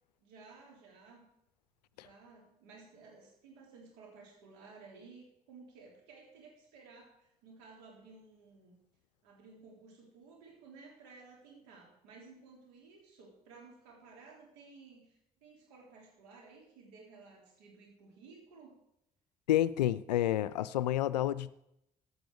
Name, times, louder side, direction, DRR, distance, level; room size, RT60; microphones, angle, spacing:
voice 1, 0.2-1.3 1.9-8.7 9.2-18.8, right 4 dB, 80° right, 0 dB, 3.7 m, -56 dB
voice 2, 19.5-21.6, left 13 dB, 85° left, 18 dB, 0.4 m, -29 dB
15.0 x 11.0 x 4.8 m, 0.81 s
figure-of-eight pair, 40°, 21 cm